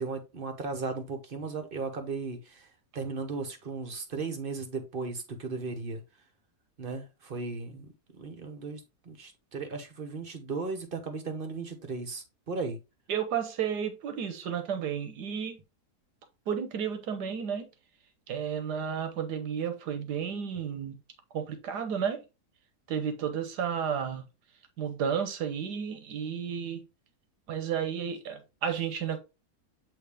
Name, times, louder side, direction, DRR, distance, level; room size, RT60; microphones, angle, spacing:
voice 1, 0.0-2.7 2.9-6.0 6.8-12.8, right 4 dB, 40° right, 1.1 m, -36 dB
voice 2, 13.1-15.6 16.5-17.7 18.3-21.0 21.3-22.2 22.9-24.2 24.8-26.8 27.5-29.2, right 7 dB, 90° right, 1.6 m, -32 dB
8.5 x 3.3 x 3.4 m
omnidirectional pair, 1.7 m